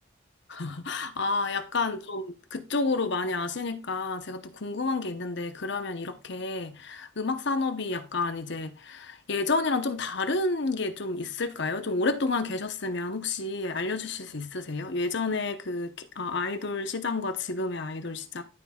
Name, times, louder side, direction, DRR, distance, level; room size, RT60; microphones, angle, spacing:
voice 1, 0.5-18.4, left 3 dB, 60° left, 0.9 m, -30 dB
11.5 x 5.2 x 2.4 m
head